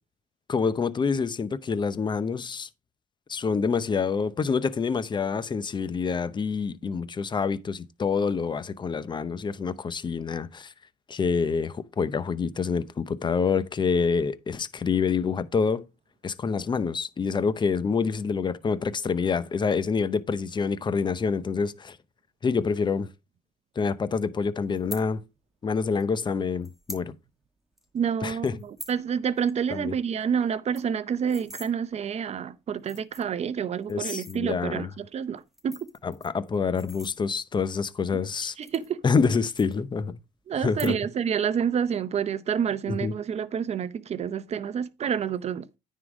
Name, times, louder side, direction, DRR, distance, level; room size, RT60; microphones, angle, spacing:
voice 1, 0.5-2.7 3.3-10.7 11.1-15.9 16.2-22.0 22.4-23.1 23.8-25.2 25.6-27.1 28.2-28.5 29.7-29.9 33.9-34.9 36.0-38.6 39.0-40.2 40.6-40.9 42.9-43.1, left 5 dB, 25° left, 0.6 m, -27 dB
sound 1, 24.7-25.0 26.0-26.1 26.6-27.1 27.4-27.5 27.8-28.0 28.4-29.0 29.4-29.5 29.8-29.9 30.2-30.3 30.5-31.7 32.4-32.5 32.8-33.4 33.9-34.4 35.4-37.5 38.2-39.3 39.6-40.2 40.6-41.2 41.5-41.9, equal, ahead, 1.5 m, -44 dB
voice 2, 27.9-35.9 38.6-39.0 40.5-45.7, right 7 dB, 40° right, 0.7 m, -28 dB
9.7 x 3.8 x 4.9 m
cardioid pair, 110°, 17 cm